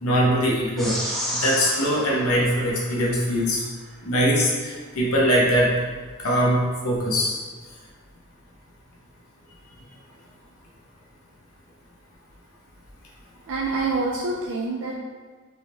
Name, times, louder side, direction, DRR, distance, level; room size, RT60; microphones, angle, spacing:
voice 1, 0.0-1.0 1.3-3.6 4.0-5.7 6.2-7.4, equal, 75° left, -4 dB, 0.8 m, -22 dB
sound 1, 0.8-3.4, equal, ahead, 0.5 m, -32 dB
voice 2, 13.5-15.0, right 3 dB, 60° right, -3 dB, 0.4 m, -26 dB
5.3 x 2.1 x 3.3 m, 1.4 s
head